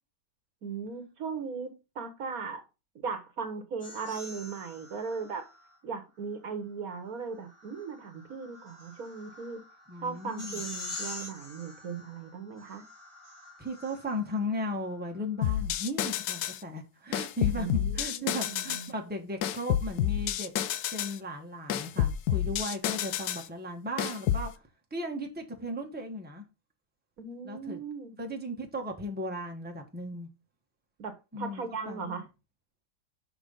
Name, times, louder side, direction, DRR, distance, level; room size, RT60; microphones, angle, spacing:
voice 1, 0.6-2.6 2.9-5.5 5.8-9.6 10.0-12.8 17.5-18.9 27.2-28.1 31.0-32.3, right 5 dB, 65° right, 1.6 m, -38 dB
sound 1, 3.8-5.8 7.2-14.4, left 2 dB, 20° left, 1.7 m, -45 dB
voice 2, 9.9-10.6 13.6-20.5 20.9-24.6 24.9-26.5 27.4-27.8 28.2-30.3 31.3-32.2, left 1 dB, 5° right, 1.3 m, -36 dB
sound 2, 15.4-16.6 17.1-18.9 19.4-21.2 21.7-23.5 24.0-24.5, left 11 dB, 80° left, 1.1 m, -29 dB
6.4 x 4.9 x 5.3 m
omnidirectional pair, 1.7 m